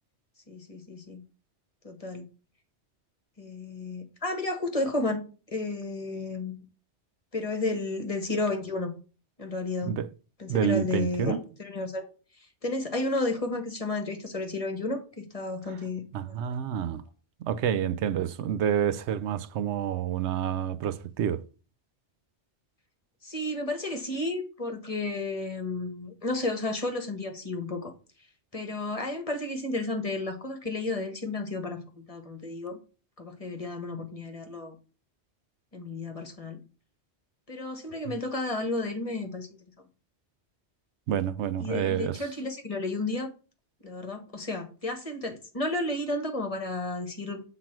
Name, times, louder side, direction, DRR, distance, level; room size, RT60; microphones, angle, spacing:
voice 1, 0.5-1.2 1.8-2.2 3.4-5.2 5.5-6.6 7.3-8.9 9.4-10.0 10.4-12.0 12.6-16.0 23.2-27.9 28.5-32.8 33.2-34.8 35.7-36.6 37.5-39.5 41.6-43.3 43.8-47.4, left 2 dB, 30° left, 1.4 m, -32 dB
voice 2, 10.5-11.4 16.1-17.0 17.4-21.5 41.1-42.2, right 9 dB, 80° right, 0.9 m, -28 dB
7.3 x 3.9 x 5.9 m
omnidirectional pair, 1.1 m